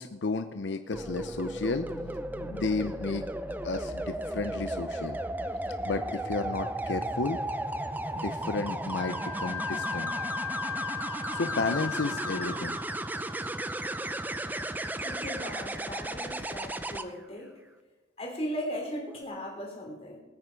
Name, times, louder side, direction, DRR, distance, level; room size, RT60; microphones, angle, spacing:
voice 1, 0.0-3.2 3.6-5.2 5.8-7.4 8.1-10.1 11.3-12.8, left 3 dB, 80° left, 9 dB, 0.6 m, -32 dB
sound 1, 0.9-17.0 18.9-19.2, right 1 dB, 10° right, 0.5 m, -35 dB
Wind instrument woodwind instrument, 9.0-12.8, left 8 dB, 5° left, 1.2 m, -36 dB
voice 2, 15.0-17.5 18.2-20.2, equal, 35° left, 0 dB, 3.3 m, -37 dB
21.0 x 9.4 x 4.7 m, 1.2 s
head